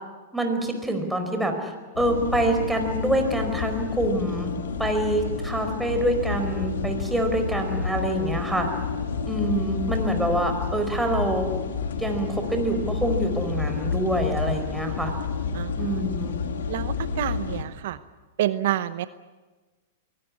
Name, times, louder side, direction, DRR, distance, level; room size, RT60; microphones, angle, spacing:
voice 1, 0.3-4.5 4.8-8.7 9.3-11.5 12.0-15.1 15.8-16.4, right 1 dB, 5° right, 5 dB, 4.6 m, -26 dB
sound 1, 2.0-17.6, left 5 dB, 80° left, 2.5 m, -29 dB
voice 2, 15.5-15.9 16.7-18.0 18.4-19.1, right 13 dB, 65° right, 13 dB, 0.8 m, -28 dB
23.0 x 18.0 x 9.7 m, 1.3 s
hypercardioid pair, 125°, 0 cm